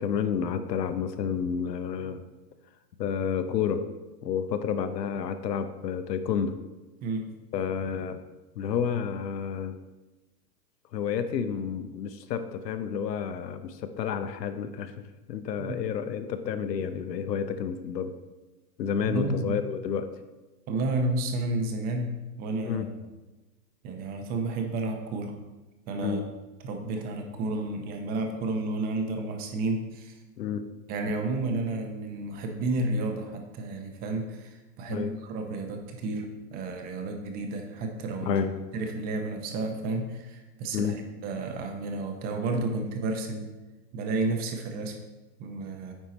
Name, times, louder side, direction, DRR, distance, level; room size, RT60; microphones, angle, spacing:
voice 1, 0.0-2.2 3.0-3.8 4.2-6.5 7.5-8.2 8.6-9.7 10.9-14.9 15.3-18.1 18.8-20.1 22.6-22.9 26.0-26.3 30.4-30.6 34.9-35.1 38.3-38.6 40.7-40.9, left 7 dB, 80° left, 10 dB, 0.9 m, -30 dB
voice 2, 19.0-19.6 20.7-22.8 23.8-25.4 25.9-26.2 26.6-30.2 30.9-38.4 38.7-43.5 43.9-45.0 45.4-45.9, right 2 dB, 20° right, 4 dB, 0.7 m, -31 dB
9.1 x 4.5 x 4.1 m, 1.1 s
hypercardioid pair, 145°, 49 cm